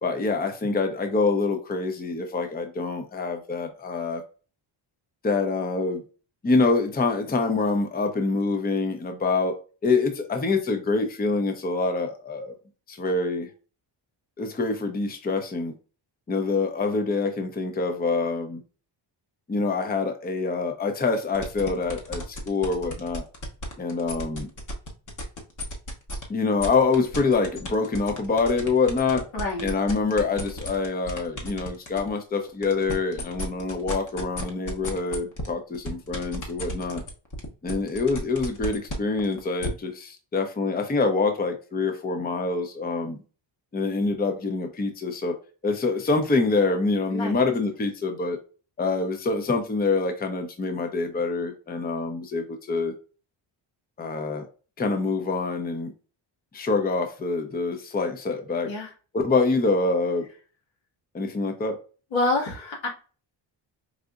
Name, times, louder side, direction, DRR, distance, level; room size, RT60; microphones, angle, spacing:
voice 1, 0.0-4.2 5.2-6.0 6.4-9.6 9.8-12.5 12.9-13.5 14.4-15.7 16.3-18.6 19.5-23.2 23.8-24.5 26.3-29.2 29.6-37.0 37.6-43.2 43.7-45.3 45.6-48.4 48.8-52.9 54.0-54.4 54.8-55.9 56.5-58.7 59.1-60.3 61.1-61.8, left 3 dB, 20° left, 0.6 m, -25 dB
sound 1, 21.3-26.2 26.6-32.1 32.5-39.7, left 1 dB, 40° left, 1.2 m, -34 dB
voice 2, 29.3-29.7 47.1-47.4 58.6-58.9 62.1-62.9, left 2 dB, 85° left, 1.7 m, -27 dB
4.9 x 2.7 x 2.4 m
cardioid pair, 130°, 45 cm